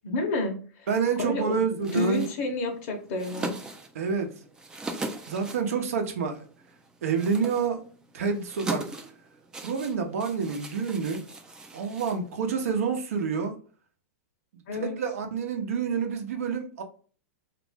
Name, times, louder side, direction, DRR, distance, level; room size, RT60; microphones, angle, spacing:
voice 1, 0.0-0.9 1.2-3.6 14.7-14.9, left 2 dB, 55° left, 0.9 m, -30 dB
voice 2, 0.9-2.2 3.9-4.3 5.3-6.4 7.0-7.8 8.1-8.8 9.6-11.2 11.7-13.6 14.8-16.8, right 6 dB, 80° right, 0.8 m, -28 dB
sound 1, 1.8-12.7, right 2 dB, 10° right, 0.4 m, -40 dB
3.0 x 2.5 x 3.3 m
hypercardioid pair, 140°, 8 cm